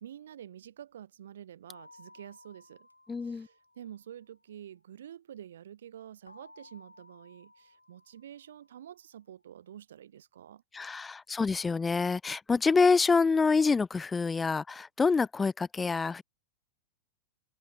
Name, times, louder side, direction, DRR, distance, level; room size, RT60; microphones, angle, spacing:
voice 1, 0.0-2.9 3.2-10.6, right 10 dB, 65° right, 1.0 m, -48 dB
sound 1, 1.7-4.6 6.3-9.1, left 2 dB, 85° left, 4.3 m, -58 dB
voice 2, 3.1-3.5 10.7-16.2, left 4 dB, 15° left, 0.3 m, -26 dB
open air
figure-of-eight pair, 90°, 0 cm